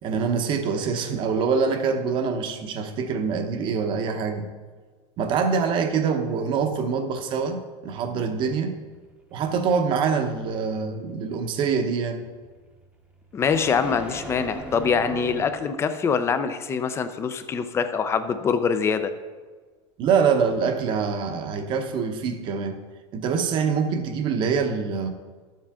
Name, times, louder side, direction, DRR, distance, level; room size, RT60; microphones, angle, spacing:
voice 1, 0.0-4.5 5.2-8.7 9.3-12.3 20.0-22.8 23.1-25.1, right 5 dB, 35° right, 7 dB, 0.9 m, -25 dB
sound 1, 8.9-15.9, right 2 dB, 5° right, 0.9 m, -40 dB
voice 2, 13.3-19.1, left 6 dB, 15° left, 10 dB, 0.5 m, -24 dB
12.0 x 7.4 x 3.6 m, 1.4 s
supercardioid pair, 165°, 15 cm